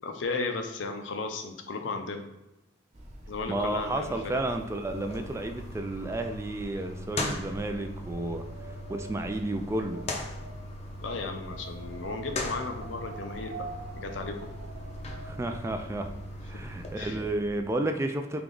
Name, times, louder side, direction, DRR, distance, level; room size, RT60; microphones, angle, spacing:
voice 1, 0.0-2.2 3.3-4.4 11.0-13.7 13.9-14.5 16.9-17.2, left 3 dB, 85° left, 5 dB, 0.6 m, -35 dB
sound 1, 2.9-17.7, equal, 40° right, 0.7 m, -46 dB
voice 2, 3.5-10.1 15.2-16.1 16.4-18.4, right 1 dB, 15° right, 6 dB, 0.3 m, -32 dB
sound 2, 4.9-16.9, left 2 dB, 35° left, 0.5 m, -40 dB
Wind, 7.0-16.0, right 4 dB, 75° right, 0.5 m, -47 dB
3.4 x 2.9 x 3.8 m, 0.95 s
head